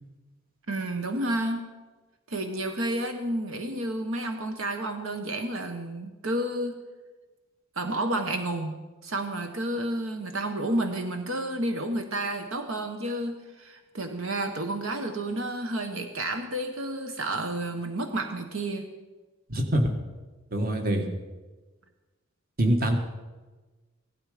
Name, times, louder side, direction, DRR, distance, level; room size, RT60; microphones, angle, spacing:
voice 1, 0.7-1.6 2.3-6.7 7.8-18.9, right 1 dB, 75° right, 6 dB, 1.2 m, -30 dB
voice 2, 19.5-19.9 20.5-21.1 22.6-23.0, right 1 dB, 45° right, 4 dB, 1.7 m, -24 dB
16.0 x 12.5 x 5.1 m, 1.2 s
head